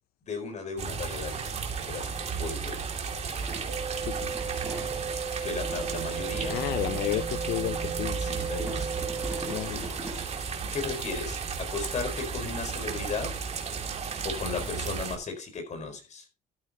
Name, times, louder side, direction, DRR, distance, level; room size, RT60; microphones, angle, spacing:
voice 1, 0.3-1.4 1.8-2.9 5.4-6.6 8.2-8.9 10.7-13.4 14.2-16.3, left 5 dB, 45° left, 4.7 m, -35 dB
sound 1, 0.8-15.2, right 5 dB, 40° right, 2.7 m, -34 dB
sound 2, 3.4-11.0, right 1 dB, 10° right, 3.0 m, -43 dB
sound 3, 3.7-9.7, right 6 dB, 60° right, 2.0 m, -36 dB
voice 2, 4.0-4.3 6.5-8.3 9.4-9.9, left 15 dB, 65° left, 0.4 m, -32 dB
13.0 x 9.2 x 3.0 m
cardioid pair, 110°, 17 cm